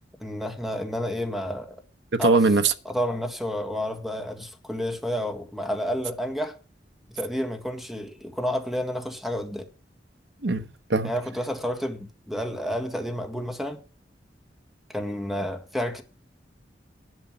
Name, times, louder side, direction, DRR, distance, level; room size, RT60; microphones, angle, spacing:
voice 1, 0.2-1.8 2.2-2.4 2.8-6.6 7.1-9.7 11.0-13.8 14.9-16.0, equal, ahead, 1.7 m, -30 dB
voice 2, 2.1-2.7 10.4-11.1, right 3 dB, 75° right, 1.1 m, -21 dB
11.0 x 6.7 x 7.4 m
head